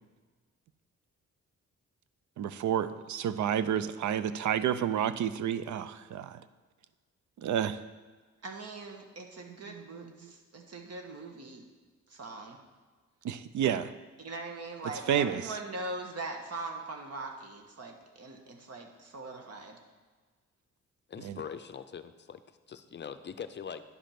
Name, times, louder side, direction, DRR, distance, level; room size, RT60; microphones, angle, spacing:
voice 1, 2.4-6.4 7.4-7.8 9.7-9.8 10.2-10.3 13.2-13.8 15.1-15.5 21.2-21.4, right 9 dB, 70° right, 14 dB, 0.5 m, -30 dB
voice 2, 8.4-11.6 12.1-12.6 14.2-19.8, right 2 dB, 55° right, 3 dB, 1.3 m, -41 dB
voice 3, 21.1-22.4 22.7-23.8, left 7 dB, 35° left, 11 dB, 0.5 m, -42 dB
9.7 x 5.2 x 5.8 m, 1.4 s
cardioid pair, 110°, 30 cm